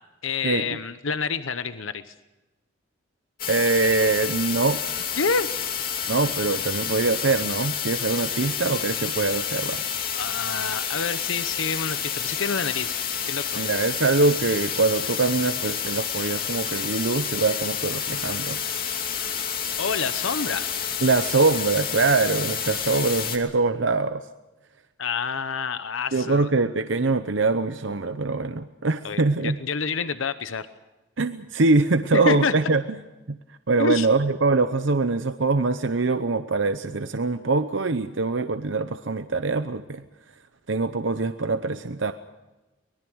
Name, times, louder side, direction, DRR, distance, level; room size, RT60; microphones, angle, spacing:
voice 1, 0.2-2.1 5.2-5.5 10.2-13.0 13.3-13.4 19.8-20.7 25.0-26.5 29.0-30.7 32.1-32.5 33.8-34.1, left 5 dB, 90° left, 12 dB, 0.9 m, -28 dB
sound 1, 3.4-23.4, left 8 dB, 45° left, 2.7 m, -29 dB
voice 2, 3.5-4.8 6.1-9.8 13.6-18.6 21.0-24.2 26.1-29.6 31.2-32.8 33.3-33.4 33.7-40.0 40.7-42.1, right 3 dB, 75° right, 9 dB, 0.8 m, -23 dB
24.5 x 20.5 x 6.3 m, 1.1 s
head